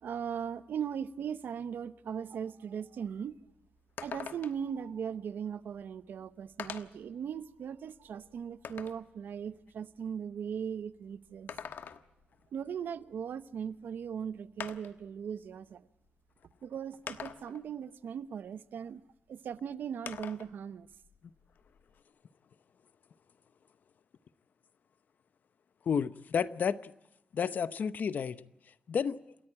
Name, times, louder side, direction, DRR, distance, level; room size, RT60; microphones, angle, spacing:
voice 1, 0.0-3.4 4.0-11.5 12.5-15.9 16.6-19.0 19.3-20.9, right 7 dB, 80° right, 0.8 m, -38 dB
sound 1, 3.0-3.1 3.5-3.6 4.0-4.7 5.8-5.9 6.6-7.1 7.6-9.1 11.3-12.3 13.7-13.8 14.6-15.1 16.1-16.2 17.1-17.7 20.1-20.5 20.9-22.0, left 7 dB, 80° left, 1.2 m, -43 dB
voice 2, 25.9-26.9 27.3-28.4 28.9-29.2, left 7 dB, 60° left, 0.8 m, -31 dB
28.5 x 13.5 x 8.7 m
wide cardioid pair, 150°, 3 cm